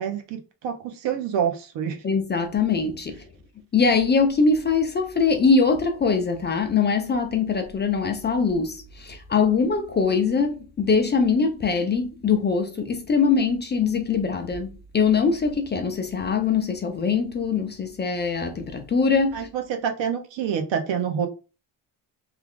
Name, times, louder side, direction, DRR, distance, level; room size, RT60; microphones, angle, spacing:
voice 1, 0.0-2.0 19.3-21.3, right 8 dB, 85° right, 0.9 m, -27 dB
voice 2, 2.0-3.2 3.7-19.5, left 5 dB, 25° left, 0.4 m, -22 dB
3.3 x 2.3 x 3.5 m
cardioid pair, 145°, 43 cm